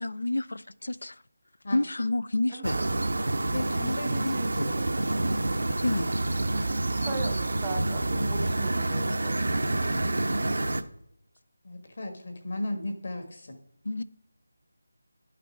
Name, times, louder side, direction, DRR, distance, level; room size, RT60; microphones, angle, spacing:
voice 1, 0.0-1.1 1.7-2.8 4.3-4.7 5.8-6.1 13.8-14.0, left 2 dB, 90° left, 17 dB, 0.5 m, -29 dB
voice 2, 2.5-2.9 4.1-5.3 7.0-9.5, right 3 dB, 10° right, 3 dB, 0.6 m, -39 dB
sound 1, 2.6-10.8, right 2 dB, 70° right, 0.7 m, -28 dB
voice 3, 3.4-4.1 11.6-13.6, left 1 dB, 45° left, 5 dB, 1.5 m, -34 dB
11.0 x 5.8 x 4.6 m, 0.78 s
figure-of-eight pair, 180°, 0 cm